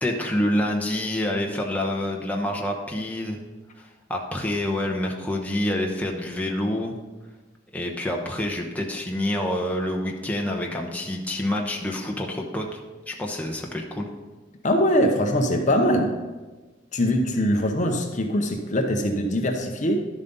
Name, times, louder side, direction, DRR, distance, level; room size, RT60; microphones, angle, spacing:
voice 1, 0.0-3.4 3.8-6.9 7.7-12.8 13.1-14.1, left 1 dB, 10° left, 0 dB, 0.9 m, -27 dB
voice 2, 14.6-16.1 16.9-20.1, equal, 40° left, 4 dB, 0.8 m, -22 dB
11.5 x 7.3 x 4.0 m, 1.2 s
head